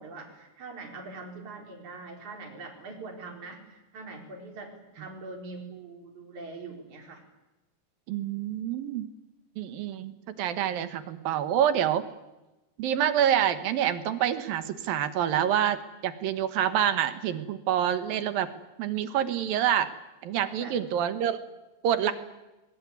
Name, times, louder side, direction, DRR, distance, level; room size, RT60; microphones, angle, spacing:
voice 1, 0.0-7.2 20.4-20.8 22.0-22.1, right 3 dB, 45° right, 2 dB, 5.6 m, -43 dB
voice 2, 8.1-9.1 9.6-12.0 12.8-18.5 18.8-19.9 20.2-21.4 21.8-22.1, right 10 dB, 65° right, 11 dB, 2.7 m, -27 dB
22.0 x 21.0 x 9.5 m, 1.0 s
omnidirectional pair, 5.0 m